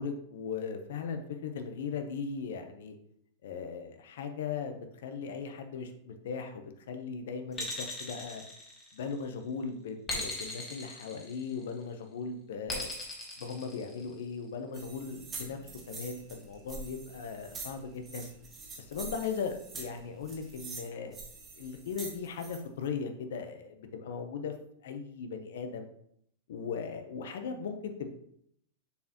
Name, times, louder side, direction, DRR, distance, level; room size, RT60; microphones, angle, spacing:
voice 1, 0.0-3.0 3.4-8.4 8.9-12.9 13.4-15.6 15.9-18.3 18.8-21.2 21.6-24.5 24.8-25.9 26.5-28.1, left 5 dB, 80° left, 7 dB, 0.9 m, -38 dB
sound 1, 7.5-9.2 10.1-11.7 12.7-14.3, left 2 dB, 20° left, 1.6 m, -38 dB
sound 2, 14.7-22.6, right 4 dB, 15° right, 1.1 m, -45 dB
6.8 x 4.6 x 3.0 m, 0.69 s
supercardioid pair, 160°, 0 cm